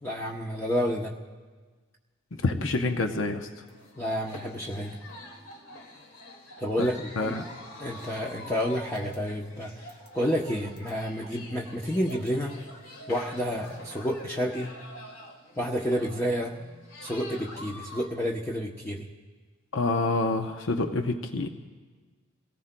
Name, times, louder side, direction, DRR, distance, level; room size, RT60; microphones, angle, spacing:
voice 1, 0.0-1.1 4.0-5.0 6.6-7.4 7.8-9.8 10.1-12.5 13.1-14.7 15.6-16.5 17.0-19.1, equal, 10° left, -3 dB, 0.7 m, -30 dB
voice 2, 2.4-3.5 6.8-6.9 7.2-7.4 19.7-21.5, left 2 dB, 60° left, 6 dB, 0.7 m, -27 dB
sound 1, 3.7-18.1, left 1 dB, 85° left, 2.1 m, -46 dB
28.5 x 18.5 x 2.2 m, 1.4 s
head